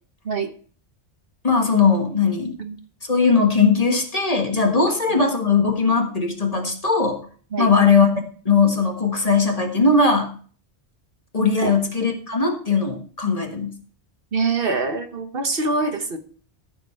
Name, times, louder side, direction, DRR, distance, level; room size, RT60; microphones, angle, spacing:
voice 1, 1.4-2.5 3.0-7.2 7.6-8.1 8.4-10.3 11.3-13.7, left 4 dB, 35° left, 3 dB, 1.6 m, -19 dB
voice 2, 4.9-5.3 7.5-7.7 11.6-11.8 14.3-16.2, right 4 dB, 55° right, 7 dB, 1.3 m, -25 dB
14.0 x 7.0 x 4.4 m, 0.43 s
omnidirectional pair, 1.1 m